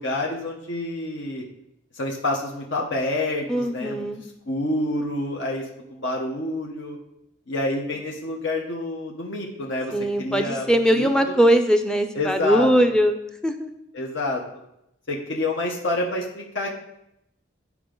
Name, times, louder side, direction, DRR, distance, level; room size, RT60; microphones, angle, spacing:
voice 1, 0.0-1.4 1.9-4.1 4.5-5.6 5.9-7.0 7.5-9.9 10.2-10.7 10.9-11.1 12.1-12.7 13.9-14.6 15.1-16.7, left 2 dB, 70° left, -1 dB, 1.1 m, -28 dB
voice 2, 3.5-4.2 9.9-13.2 13.4-13.7, equal, 5° left, 7 dB, 0.5 m, -20 dB
11.0 x 4.7 x 3.9 m, 0.82 s
head